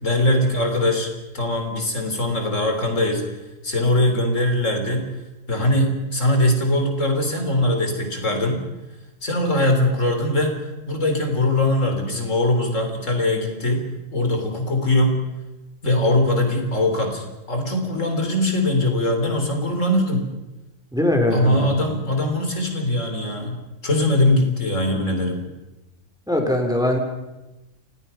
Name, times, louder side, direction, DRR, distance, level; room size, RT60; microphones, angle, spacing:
voice 1, 0.0-1.1 1.3-3.2 3.6-5.1 5.5-8.6 9.2-10.5 10.9-13.8 14.1-15.2 15.8-20.2 21.3-23.5 23.8-25.4, left 1 dB, 70° left, 4 dB, 3.9 m, -21 dB
voice 2, 20.9-21.8 26.3-27.0, left 1 dB, 5° right, 3 dB, 3.4 m, -21 dB
29.5 x 18.0 x 5.7 m, 1.0 s
omnidirectional pair, 1.4 m